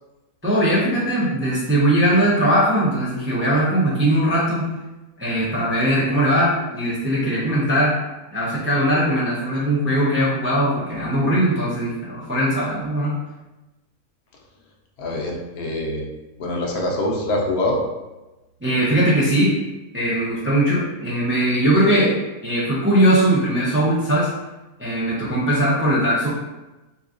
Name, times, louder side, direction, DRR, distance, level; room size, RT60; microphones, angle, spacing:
voice 1, 0.4-4.7 5.2-7.9 8.3-13.1 18.6-19.5 19.9-22.2 22.4-24.3 24.8-26.3, right 1 dB, 20° right, -7 dB, 0.3 m, -20 dB
voice 2, 15.0-16.1 16.4-17.8, left 1 dB, 85° left, 0 dB, 1.2 m, -24 dB
3.6 x 3.0 x 2.4 m, 1.1 s
omnidirectional pair, 1.5 m